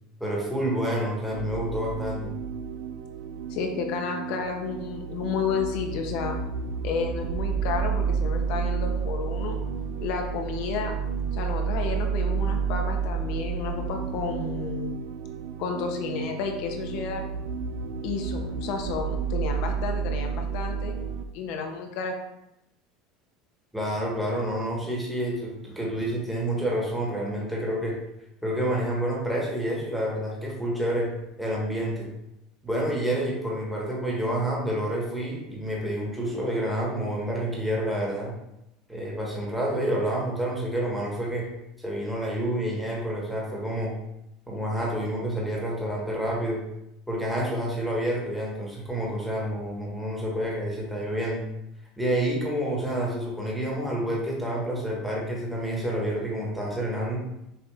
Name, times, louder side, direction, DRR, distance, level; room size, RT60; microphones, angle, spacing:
voice 1, 0.2-2.3 23.7-28.0 28.4-31.1 31.4-32.1 32.6-38.3 38.9-41.5 41.8-43.9 44.5-46.6 47.1-51.4 52.0-57.2, right 1 dB, ahead, -3 dB, 1.2 m, -28 dB
sound 1, 1.3-21.2, right 6 dB, 85° right, 0.4 m, -30 dB
voice 2, 3.5-6.4 6.8-9.6 10.0-11.0 11.3-15.0 15.6-17.2 18.0-21.0 21.3-22.2, left 5 dB, 65° left, 3 dB, 0.7 m, -31 dB
5.7 x 2.5 x 3.4 m, 0.87 s
supercardioid pair, 130°, 0 cm